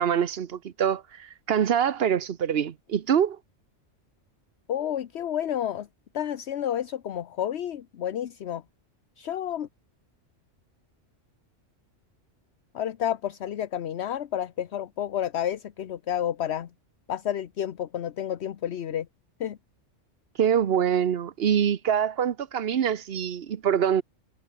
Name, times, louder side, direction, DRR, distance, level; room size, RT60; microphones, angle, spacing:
voice 1, 0.0-3.4 20.4-24.0, right 8 dB, 55° right, 1.0 m, -25 dB
voice 2, 4.7-5.9 6.1-8.6 9.2-9.7 12.7-16.7 17.1-19.1 19.4-19.6, left 10 dB, 60° left, 1.1 m, -30 dB
omnidirectional pair, 1.3 m